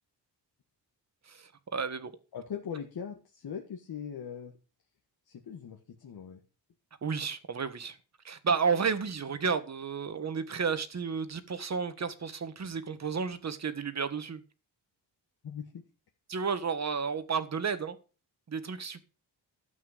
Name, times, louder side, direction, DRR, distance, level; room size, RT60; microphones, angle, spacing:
voice 1, 1.3-2.1 7.0-8.0 8.2-14.4 16.3-18.0 18.5-19.0, right 5 dB, 35° right, 1.5 m, -32 dB
voice 2, 2.3-4.5 5.3-6.4 15.4-15.8, left 7 dB, 55° left, 1.8 m, -40 dB
13.0 x 8.4 x 5.2 m
wide cardioid pair, 135°, 44 cm